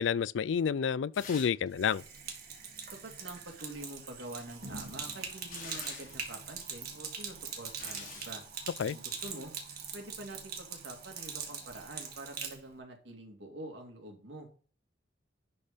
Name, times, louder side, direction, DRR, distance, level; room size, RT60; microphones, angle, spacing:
voice 1, 0.0-2.0 8.8-9.0, left 7 dB, 80° left, 0.4 m, -29 dB
sound 1, 1.1-1.7 1.9-2.0 4.4-6.2 7.2-8.3 9.1-9.4, left 5 dB, 45° left, 3.2 m, -48 dB
Sink (filling or washing), 1.7-12.6, right 6 dB, 55° right, 1.9 m, -42 dB
voice 2, 2.9-8.4 8.9-9.5 9.9-14.5, right 1 dB, 75° right, 2.3 m, -46 dB
10.5 x 4.4 x 5.0 m
head